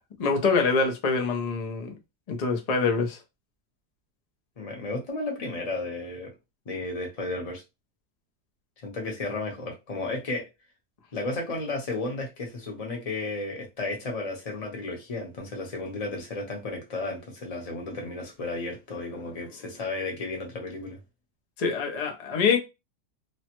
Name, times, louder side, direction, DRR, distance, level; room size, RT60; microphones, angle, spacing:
voice 1, 0.2-1.9 2.3-3.2 21.6-22.6, left 4 dB, 70° left, 0.3 m, -25 dB
voice 2, 4.6-6.3 6.7-7.6 8.8-10.5 11.1-21.0, left 2 dB, 30° left, 0.8 m, -33 dB
3.1 x 2.1 x 2.9 m
omnidirectional pair, 1.7 m